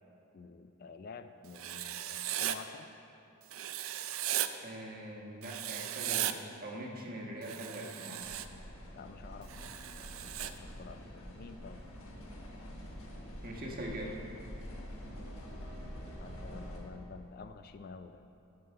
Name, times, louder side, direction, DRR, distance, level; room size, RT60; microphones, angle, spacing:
voice 1, 0.3-2.9 8.9-9.7 10.2-11.8 16.2-18.2, left 4 dB, 45° left, 9 dB, 0.3 m, -49 dB
Writing, 1.5-2.6 3.5-4.5 5.4-6.3 7.4-8.5 9.5-10.5, right 12 dB, 65° right, 0.4 m, -36 dB
voice 2, 4.6-8.3 13.4-14.2, right 1 dB, 45° right, -1 dB, 1.4 m, -42 dB
sound 1, 8.2-16.8, equal, 70° left, 1.6 m, -46 dB
9.8 x 7.7 x 5.5 m, 2.8 s
head